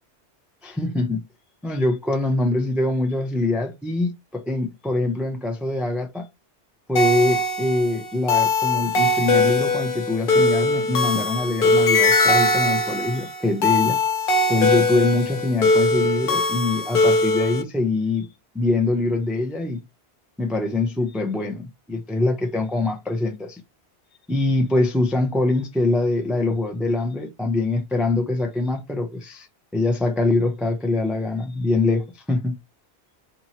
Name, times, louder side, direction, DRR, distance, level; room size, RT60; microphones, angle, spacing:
voice 1, 0.6-1.2 1.6-6.3 6.9-14.0 14.5-18.3 18.5-19.8 20.4-23.6 24.3-29.5 29.7-32.5, left 2 dB, ahead, 0.4 m, -23 dB
sound 1, 7.0-17.6, left 2 dB, 55° left, 0.8 m, -21 dB
4.2 x 2.6 x 2.9 m
omnidirectional pair, 1.1 m